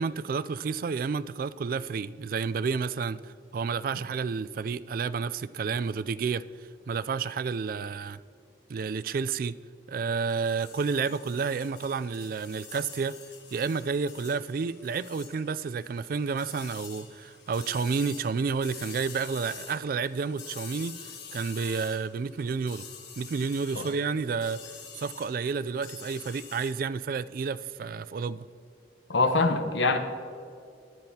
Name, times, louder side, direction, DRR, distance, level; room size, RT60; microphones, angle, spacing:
voice 1, 0.0-6.4 6.9-8.2 8.7-9.5 9.9-13.2 13.5-22.8 23.2-28.5, right 5 dB, 50° right, 0.3 m, -30 dB
sound 1, 10.2-26.7, left 6 dB, 70° left, 1.7 m, -47 dB
voice 2, 29.1-30.0, left 3 dB, 90° left, 1.0 m, -24 dB
18.0 x 10.5 x 2.8 m
head